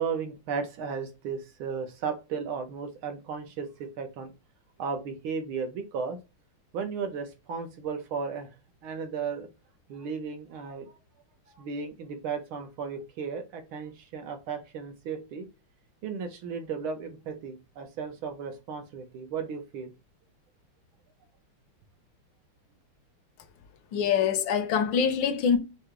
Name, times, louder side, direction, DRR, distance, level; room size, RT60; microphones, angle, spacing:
voice 1, 0.0-4.3 4.8-6.2 6.7-8.5 8.8-9.5 9.9-10.9 11.5-15.5 16.0-19.9, right 6 dB, 75° right, 1.8 m, -35 dB
voice 2, 23.9-25.6, left 7 dB, 70° left, 1.3 m, -24 dB
6.4 x 2.3 x 3.2 m
omnidirectional pair, 2.4 m